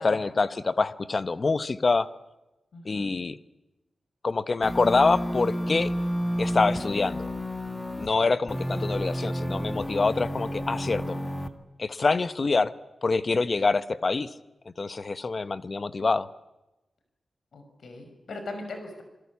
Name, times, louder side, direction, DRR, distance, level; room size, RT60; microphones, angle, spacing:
voice 1, 0.0-2.1 2.8-3.4 4.2-5.9 6.4-7.3 8.0-11.2 11.8-12.7 13.0-14.3 14.8-16.3, left 3 dB, 35° left, 14 dB, 1.0 m, -25 dB
voice 2, 2.7-3.2 8.0-8.3 17.5-19.0, left 2 dB, 70° left, 6 dB, 5.5 m, -40 dB
sound 1, 4.6-8.1 8.5-11.5, equal, 10° left, 1.8 m, -31 dB
27.5 x 22.0 x 8.5 m, 0.98 s
wide cardioid pair, 155°, 0 cm